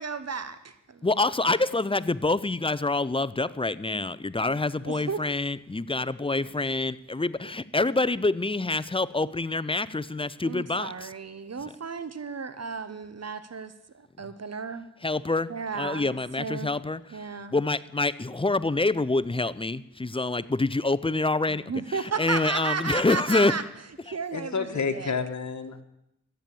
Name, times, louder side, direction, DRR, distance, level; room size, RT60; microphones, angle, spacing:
voice 1, 0.0-1.1 1.4-1.6 4.8-5.2 10.4-14.9 15.5-16.7 17.1-17.6 21.5-23.6 24.0-25.1, right 5 dB, 50° right, 13 dB, 1.2 m, -34 dB
voice 2, 1.0-11.1 15.0-15.5 15.7-17.0 17.5-21.6 22.2-23.6, left 2 dB, 15° left, 17 dB, 0.6 m, -26 dB
voice 3, 24.3-25.8, left 5 dB, 60° left, 7 dB, 1.6 m, -30 dB
13.5 x 9.1 x 8.5 m, 0.83 s
cardioid pair, 55°, 32 cm